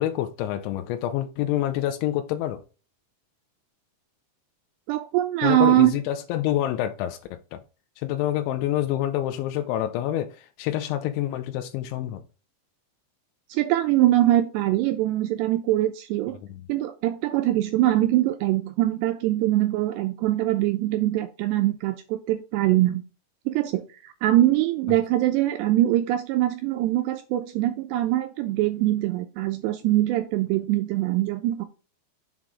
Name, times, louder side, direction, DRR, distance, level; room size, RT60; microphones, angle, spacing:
voice 1, 0.0-2.6 5.4-7.6 8.0-12.2 16.5-16.7, left 12 dB, 90° left, 3.1 m, -27 dB
voice 2, 4.9-5.9 13.5-16.4 16.7-23.0 23.5-31.7, right 14 dB, 80° right, 2.6 m, -23 dB
7.3 x 3.8 x 4.8 m
omnidirectional pair, 5.3 m